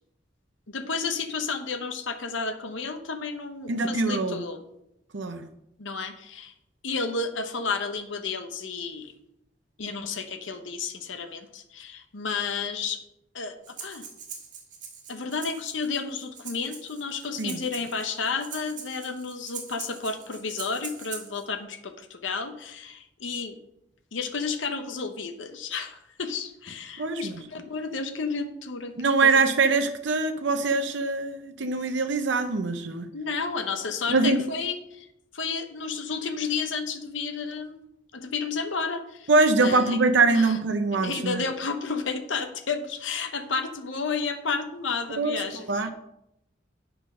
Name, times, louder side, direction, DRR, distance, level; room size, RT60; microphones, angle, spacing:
voice 1, 0.7-4.6 5.8-6.5 6.8-9.1 9.8-13.0 13.3-14.0 15.1-23.6 24.1-28.9 29.2-29.3 33.1-35.1 35.3-37.8 38.1-39.3 39.6-40.0 40.3-40.6 41.0-45.9, left 4 dB, 85° left, 7 dB, 0.9 m, -32 dB
voice 2, 3.7-4.4 5.1-5.5 17.4-17.6 27.0-27.4 29.0-33.1 34.1-34.4 39.3-41.4 45.2-45.9, right 3 dB, 75° right, 7 dB, 0.7 m, -23 dB
Breathing, 13.6-21.4, right 6 dB, 40° right, 2.0 m, -42 dB
8.5 x 5.7 x 5.6 m, 0.83 s
head